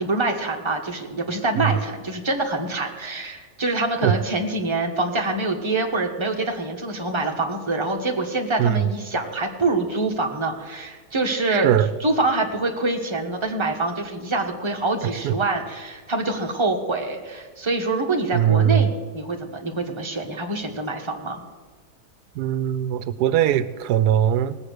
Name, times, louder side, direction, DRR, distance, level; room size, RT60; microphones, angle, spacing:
voice 1, 0.0-11.7 12.0-21.4, right 2 dB, 20° right, 1 dB, 1.4 m, -25 dB
voice 2, 11.5-11.9 15.2-15.3 18.3-18.9 22.4-24.6, right 10 dB, 90° right, 15 dB, 1.1 m, -20 dB
18.5 x 7.5 x 6.6 m, 1.4 s
omnidirectional pair, 1.7 m